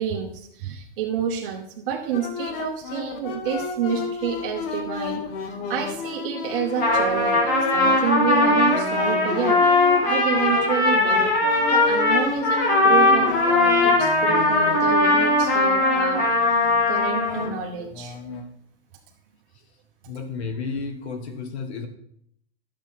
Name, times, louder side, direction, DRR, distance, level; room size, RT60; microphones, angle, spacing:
voice 1, 0.0-7.4 7.7-11.3 11.7-16.6 16.9-18.1, right 7 dB, 55° right, 2 dB, 1.2 m, -29 dB
sound 1, 2.1-18.4, left 5 dB, 55° left, 1.3 m, -33 dB
Trumpet, 6.6-17.5, left 2 dB, 25° left, 2.4 m, -20 dB
Keyboard (musical), 6.9-9.3, right 11 dB, 5° left, 3.3 m, -34 dB
voice 2, 20.1-21.9, left 4 dB, 75° left, 7 dB, 1.5 m, -32 dB
10.5 x 7.7 x 3.6 m, 0.70 s
hypercardioid pair, 130°, 33 cm